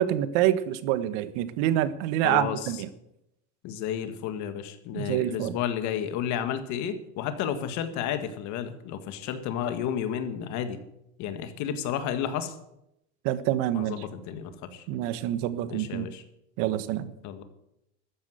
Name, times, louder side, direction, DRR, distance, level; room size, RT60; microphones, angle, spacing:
voice 1, 0.0-2.9 4.9-5.6 13.2-13.9 14.9-16.1 16.6-17.1, right 12 dB, 65° right, 14 dB, 1.4 m, -26 dB
voice 2, 2.2-2.8 3.6-10.8 11.2-12.6 13.7-14.9 15.7-16.2 17.2-17.4, left 9 dB, 55° left, 9 dB, 1.9 m, -32 dB
13.5 x 9.8 x 8.0 m, 0.82 s
supercardioid pair, 130°, 34 cm